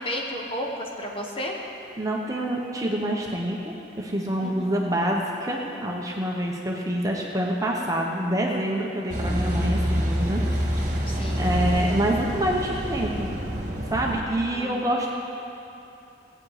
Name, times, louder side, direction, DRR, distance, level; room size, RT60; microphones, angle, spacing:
voice 1, 0.0-1.6 4.4-4.7 11.1-11.5 14.5-14.9, equal, 30° left, -1 dB, 1.4 m, -32 dB
voice 2, 2.0-10.4 11.4-13.3 13.9-15.1, right 1 dB, 20° right, -1 dB, 1.0 m, -26 dB
Car passing by / Idling / Accelerating revving vroom, 9.1-14.2, equal, 40° right, 1.6 m, -27 dB
17.5 x 8.7 x 5.0 m, 2.8 s
head